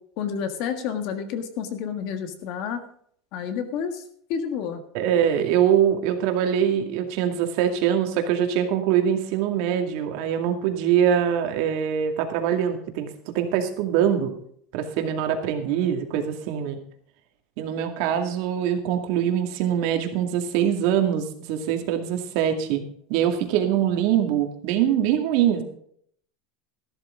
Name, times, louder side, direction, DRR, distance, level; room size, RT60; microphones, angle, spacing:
voice 1, 0.2-2.8 3.3-4.0 4.3-4.8, left 7 dB, 45° left, 8 dB, 1.6 m, -29 dB
voice 2, 4.9-13.1 13.3-14.3 14.7-16.8 17.6-22.8 23.1-25.6, right 9 dB, 55° right, 5 dB, 2.1 m, -23 dB
14.0 x 12.0 x 3.8 m, 0.63 s
supercardioid pair, 170°, 0 cm